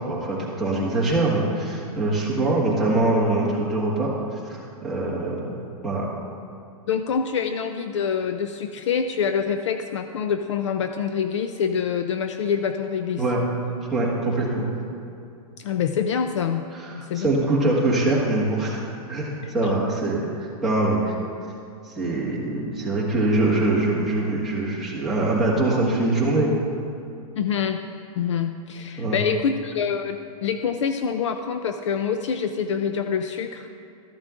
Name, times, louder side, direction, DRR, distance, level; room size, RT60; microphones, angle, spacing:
voice 1, 0.0-4.1 4.4-5.5 5.8-6.0 13.2-13.5 13.9-14.7 16.7-21.1 21.8-26.5 29.0-29.2, right 2 dB, ahead, -8 dB, 1.5 m, -23 dB
voice 2, 6.9-13.2 15.6-16.6 17.0-17.3 19.6-19.8 27.4-27.8 28.2-33.7, left 7 dB, 50° left, 8 dB, 0.4 m, -26 dB
13.5 x 11.0 x 2.5 m, 2.6 s
hypercardioid pair, 170°, 20 cm